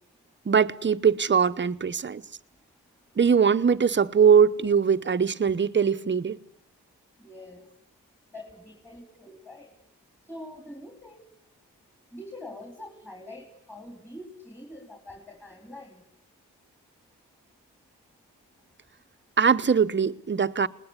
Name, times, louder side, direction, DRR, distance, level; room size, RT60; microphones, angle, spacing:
voice 1, 0.5-2.2 3.2-6.4 19.4-20.7, right 6 dB, 35° right, 0.9 m, -21 dB
voice 2, 7.2-7.7 8.3-9.7 10.3-11.2 12.1-16.0, left 1 dB, 5° left, 3.6 m, -44 dB
28.5 x 20.0 x 9.8 m
wide cardioid pair, 130°, 31 cm